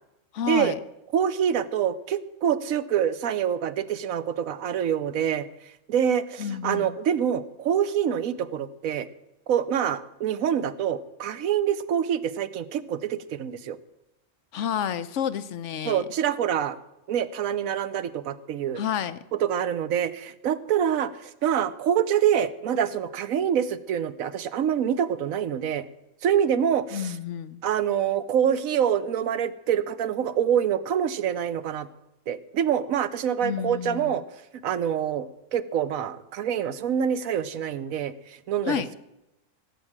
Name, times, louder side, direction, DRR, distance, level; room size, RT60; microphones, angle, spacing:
voice 1, 0.3-0.8 6.4-7.0 14.5-16.0 18.8-19.2 26.9-27.6 33.4-34.2 38.7-38.9, left 8 dB, 65° left, 12 dB, 1.0 m, -30 dB
voice 2, 1.1-5.5 5.9-9.1 9.5-13.8 15.8-16.8 17.1-18.8 19.3-25.8 26.2-27.1 27.6-31.9 32.3-34.2 34.6-39.0, right 9 dB, 90° right, 13 dB, 1.2 m, -26 dB
16.5 x 7.8 x 7.3 m, 0.92 s
omnidirectional pair, 1.4 m